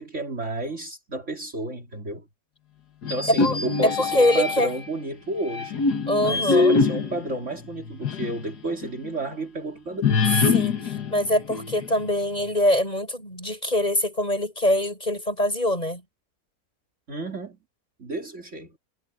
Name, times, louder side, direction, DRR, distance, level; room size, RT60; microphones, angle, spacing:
voice 1, 0.0-2.2 3.1-5.8 6.2-10.1 17.1-17.6 18.0-18.8, right 2 dB, 45° right, 3.1 m, -31 dB
sound 1, 3.0-4.9 5.5-8.4 8.8-8.9 10.0-12.1, left 4 dB, 75° left, 2.2 m, -24 dB
voice 2, 3.8-4.7 6.1-6.8 10.5-10.8 11.1-16.0, left 1 dB, 25° left, 8.0 m, -23 dB
omnidirectional pair, 1.7 m